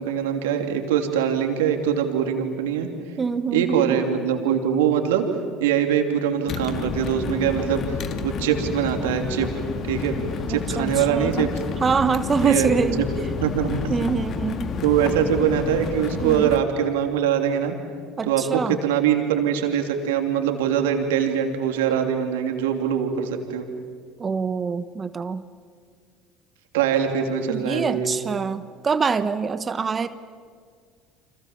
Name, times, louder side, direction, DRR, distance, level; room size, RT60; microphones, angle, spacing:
voice 1, 0.0-2.9 3.5-5.3 5.6-8.0 8.2-9.5 9.8-10.2 10.5-11.5 12.4-12.7 13.0-13.1 13.4-13.9 14.8-17.8 18.2-23.7 26.7-28.1, right 8 dB, 75° right, 4 dB, 3.0 m, -23 dB
voice 2, 3.2-4.0 10.5-11.3 11.8-13.0 13.9-14.7 16.2-16.5 18.2-18.8 24.2-25.4 27.5-30.1, right 5 dB, 30° right, 13 dB, 1.2 m, -25 dB
sound 1, 6.5-16.6, left 5 dB, 50° left, 2.1 m, -30 dB
30.0 x 26.5 x 7.4 m, 2.1 s
hypercardioid pair, 65°, 0 cm